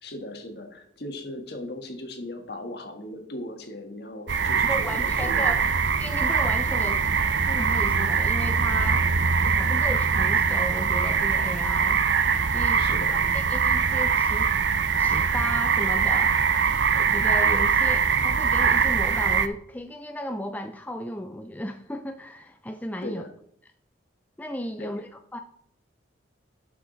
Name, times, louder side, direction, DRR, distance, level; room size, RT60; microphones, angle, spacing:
voice 1, 0.0-5.5 12.7-13.3 23.0-23.3 24.8-24.9, left 1 dB, 60° left, 5 dB, 1.5 m, -38 dB
sound 1, 4.3-19.5, right 6 dB, 70° right, 0.6 m, -22 dB
voice 2, 4.6-5.6 6.0-7.0 7.5-9.0 9.4-12.0 12.5-12.8 13.1-14.5 15.0-16.4 17.0-23.2 24.4-25.4, left 1 dB, 10° left, 6 dB, 0.4 m, -35 dB
12.0 x 5.7 x 4.0 m, 0.69 s
head